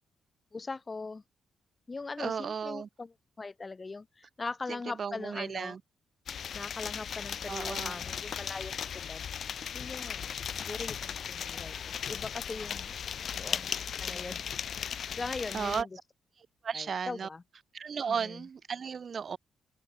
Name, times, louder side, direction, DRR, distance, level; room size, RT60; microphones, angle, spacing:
voice 1, 0.5-1.2 1.9-5.8 6.5-9.3 9.7-12.9 13.4-13.7 14.0-14.4 15.1-15.9 16.7-17.4 18.1-18.4, left 3 dB, 25° left, 3.7 m, -40 dB
voice 2, 2.2-2.9 5.0-5.8 7.5-8.0 15.5-15.9 16.6-17.3 17.7-19.4, right 6 dB, 45° right, 0.5 m, -34 dB
sound 1, 6.3-15.8, left 8 dB, 60° left, 1.7 m, -37 dB
cardioid pair, 115°, 0 cm